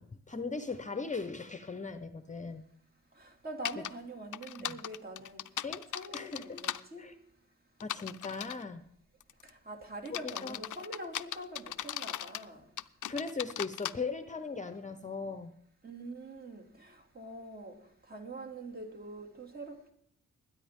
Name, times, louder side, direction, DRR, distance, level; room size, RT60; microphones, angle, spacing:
voice 1, 0.0-2.6 4.6-4.8 5.6-5.9 6.1-6.6 7.0-7.1 7.8-8.8 10.1-10.6 13.1-15.5, left 4 dB, 25° left, 9 dB, 0.7 m, -38 dB
voice 2, 3.1-5.7 5.9-7.2 9.4-12.7 15.8-19.9, right 1 dB, 30° right, 1 dB, 2.5 m, -45 dB
sound 1, 3.6-3.9 4.3-6.8 7.8-8.6 9.2-9.5 10.0-12.5 12.8-13.9, left 12 dB, 90° left, 0.5 m, -38 dB
21.0 x 9.8 x 3.6 m, 0.70 s
wide cardioid pair, 100°, 30 cm